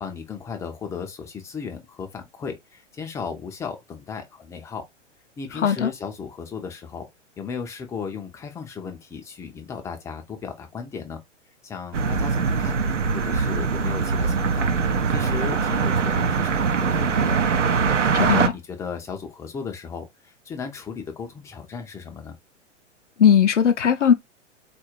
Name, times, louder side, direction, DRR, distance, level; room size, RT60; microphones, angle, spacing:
voice 1, 0.0-4.8 5.4-7.1 7.4-11.2 11.6-12.8 13.1-14.7 15.1-17.4 18.1-22.4, left 6 dB, 10° left, 0.5 m, -35 dB
voice 2, 5.6-5.9 18.1-18.5 23.2-24.1, left 8 dB, 75° left, 0.6 m, -18 dB
sound 1, 11.9-18.5, right 5 dB, 80° right, 0.7 m, -22 dB
4.0 x 2.5 x 3.0 m
figure-of-eight pair, 100°, 37 cm